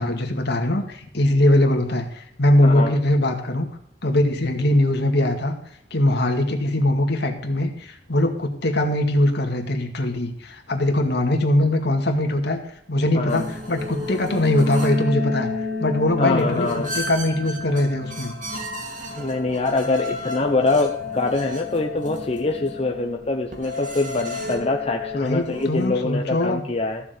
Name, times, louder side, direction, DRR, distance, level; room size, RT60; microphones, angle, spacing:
voice 1, 0.0-3.7 4.0-5.5 5.9-12.6 12.9-15.5 15.8-18.3 25.2-26.6, left 1 dB, 65° left, 4 dB, 2.2 m, -21 dB
voice 2, 2.6-2.9 13.1-13.4 16.2-16.9 19.2-27.0, left 2 dB, 35° left, 2 dB, 1.0 m, -24 dB
sound 1, 13.3-25.9, left 3 dB, 45° right, 2.9 m, -31 dB
15.0 x 7.1 x 6.8 m, 0.70 s
head